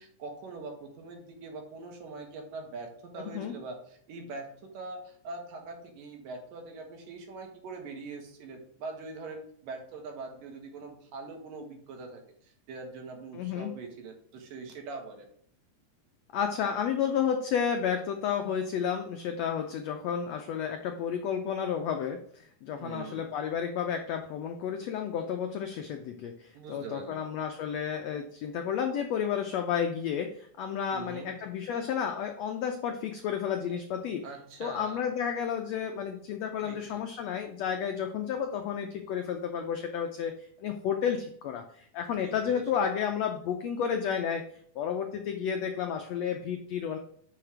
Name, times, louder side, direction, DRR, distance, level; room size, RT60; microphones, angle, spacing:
voice 1, 0.0-15.3 22.7-23.3 26.5-27.3 30.9-31.3 34.2-35.1 36.6-37.0 42.2-42.6, right 3 dB, 80° right, 3 dB, 3.0 m, -43 dB
voice 2, 13.3-13.7 16.3-34.2 34.6-44.4 44.7-47.0, left 8 dB, 90° left, 4 dB, 1.5 m, -31 dB
6.3 x 5.0 x 5.9 m, 0.64 s
omnidirectional pair, 3.9 m